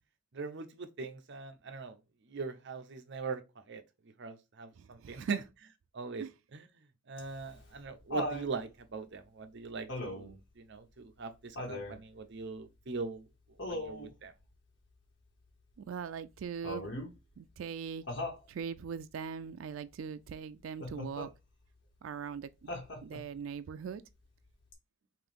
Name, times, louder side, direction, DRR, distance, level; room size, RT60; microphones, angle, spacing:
voice 1, 0.3-2.0 2.3-3.4 3.7-3.8 4.2-5.4 5.9-6.2 6.5-6.7 7.1-13.2 13.6-14.3, right 4 dB, 65° right, 0.7 m, -41 dB
voice 2, 4.8-5.4 6.2-6.3 15.8-16.9 17.4-21.3 22.0-22.7 23.0-24.0, right 6 dB, 85° right, 0.4 m, -41 dB
Laughter, 7.2-8.5 9.9-10.4 11.5-12.0 13.6-14.1 16.6-17.1 18.1-18.4 20.8-21.3 22.7-23.3 24.7-24.8, left 1 dB, 65° left, 1.5 m, -38 dB
5.7 x 2.6 x 3.5 m
head